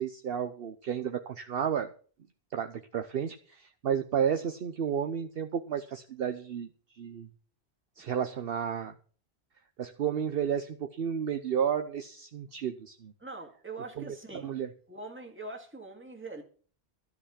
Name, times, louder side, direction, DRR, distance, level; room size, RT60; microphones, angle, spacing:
voice 1, 0.0-1.9 2.5-6.7 6.9-7.3 8.0-8.9 9.8-13.1 14.0-14.7, right 8 dB, 65° right, 0.9 m, -32 dB
voice 2, 13.2-14.5 14.9-16.4, right 3 dB, 10° right, 2.0 m, -43 dB
13.0 x 5.7 x 8.2 m
omnidirectional pair, 1.1 m